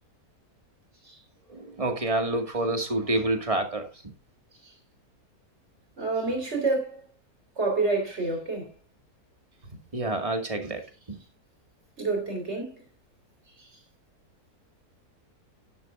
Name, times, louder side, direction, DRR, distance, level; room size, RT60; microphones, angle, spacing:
voice 1, 1.8-3.9 9.9-10.8 11.1-11.2, right 2 dB, 20° right, 2.2 m, -27 dB
voice 2, 6.0-7.0 7.6-8.7 12.0-12.8 13.6-13.7, right 3 dB, 45° right, 4.4 m, -28 dB
11.5 x 11.0 x 2.6 m
omnidirectional pair, 1.6 m